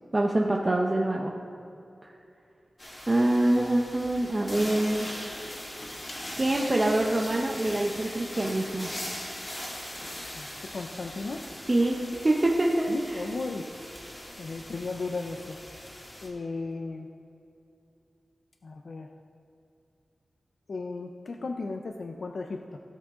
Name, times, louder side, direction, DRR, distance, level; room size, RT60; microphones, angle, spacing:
voice 1, 0.1-1.3 2.0-2.1 3.1-5.1 6.4-8.9 11.7-11.9 12.2-13.2, right 1 dB, 30° right, -1 dB, 0.7 m, -25 dB
sound 1, 2.8-16.3, left 1 dB, 30° left, 2.0 m, -40 dB
voice 2, 10.3-11.4 12.9-13.6 14.4-15.6 16.2-17.1 18.6-19.1 20.7-22.8, left 3 dB, 65° left, 4 dB, 0.5 m, -35 dB
16.5 x 7.3 x 3.7 m, 2.7 s
wide cardioid pair, 110°, 0 cm